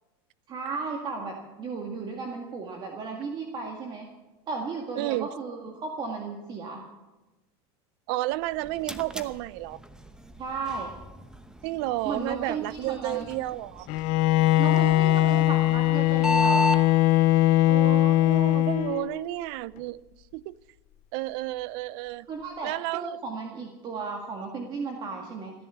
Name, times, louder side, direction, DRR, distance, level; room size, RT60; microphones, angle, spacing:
voice 1, 0.5-4.1 4.5-6.8 10.4-10.9 12.0-13.3 14.6-16.7 22.3-25.5, right 4 dB, 35° right, 2.0 m, -35 dB
voice 2, 5.0-5.3 8.1-9.8 11.6-13.9 14.7-15.4 17.7-20.0 20.3-20.5 21.1-22.3 22.6-23.2, right 17 dB, 65° right, 0.6 m, -32 dB
sound 1, 8.3-16.8, left 1 dB, 5° right, 0.9 m, -34 dB
Bowed string instrument, 13.9-19.2, left 16 dB, 60° left, 0.6 m, -21 dB
15.5 x 11.0 x 8.0 m
supercardioid pair, 125°, 13 cm